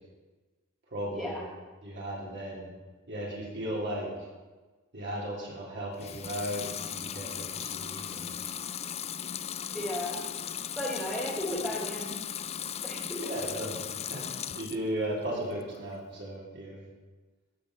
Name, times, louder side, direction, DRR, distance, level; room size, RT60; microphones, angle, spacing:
voice 1, 0.9-1.4 1.8-2.7 3.1-4.3 4.9-8.6 13.2-13.8 14.1-16.8, right 1 dB, 55° right, -3 dB, 3.5 m, -36 dB
Water tap faucet / Sink (filling or washing) / Liquid, 5.9-14.9 15.3-16.0, left 9 dB, 30° left, 0.4 m, -37 dB
voice 2, 9.7-10.2 10.8-12.1 12.8-13.2, left 1 dB, ahead, -11 dB, 3.6 m, -34 dB
16.5 x 5.5 x 6.5 m, 1.3 s
head